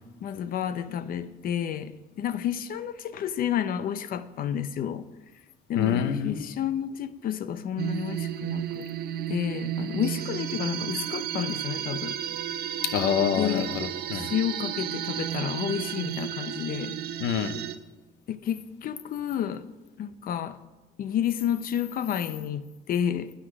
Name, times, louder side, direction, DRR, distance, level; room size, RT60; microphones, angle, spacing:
voice 1, 0.2-5.1 5.7-8.9 9.3-12.2 13.4-13.7 14.2-17.0 18.3-19.7 20.0-20.6 21.0-23.3, left 9 dB, 60° left, 0.7 m, -30 dB
voice 2, 5.8-6.5 12.8-14.3 17.2-17.5, left 8 dB, 90° left, 0.9 m, -26 dB
sound 1, 7.8-17.8, right 10 dB, 65° right, 0.7 m, -33 dB
10.0 x 9.7 x 6.0 m
cardioid pair, 110°, 17 cm